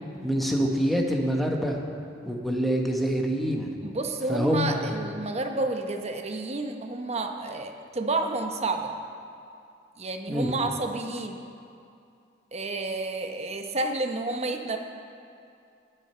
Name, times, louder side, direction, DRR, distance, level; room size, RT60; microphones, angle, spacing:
voice 1, 0.2-1.8 2.2-3.7 4.3-4.9 10.3-10.5, equal, ahead, 0 dB, 1.1 m, -26 dB
voice 2, 3.8-8.9 10.0-11.4 12.5-14.8, right 2 dB, 35° right, 4 dB, 0.9 m, -30 dB
20.0 x 6.6 x 4.4 m, 2.5 s
head